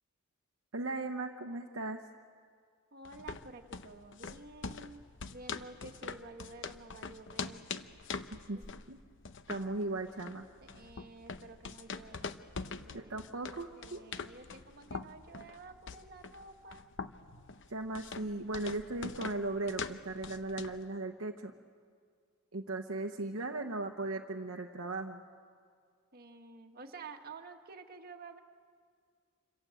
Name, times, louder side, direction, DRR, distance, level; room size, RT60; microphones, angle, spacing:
voice 1, 0.7-2.0 8.3-8.6 8.9-9.0 9.5-10.5 12.9-14.1 17.7-21.5 22.5-25.2, right 2 dB, 60° right, 3 dB, 1.0 m, -37 dB
voice 2, 2.9-5.0 5.3-7.6 8.5-8.7 10.6-12.4 12.6-13.2 13.8-16.9 26.1-28.4, right 3 dB, 45° right, 4 dB, 1.6 m, -51 dB
sound 1, 3.0-20.8, left 5 dB, 55° left, 0.8 m, -44 dB
27.0 x 26.0 x 7.7 m, 2.1 s
head